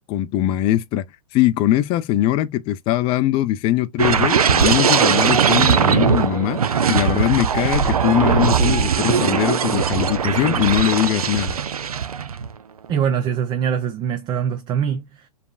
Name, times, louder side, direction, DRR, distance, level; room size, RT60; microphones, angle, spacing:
voice 1, 0.1-1.0 1.3-6.6 6.9-11.6, left 13 dB, 30° left, 0.4 m, -21 dB
sound 1, 4.0-12.5 12.8-13.1, right 7 dB, 80° right, 0.6 m, -19 dB
voice 2, 12.9-15.3, right 8 dB, 25° right, 0.6 m, -23 dB
4.9 x 3.3 x 2.4 m
hypercardioid pair, 115°, 19 cm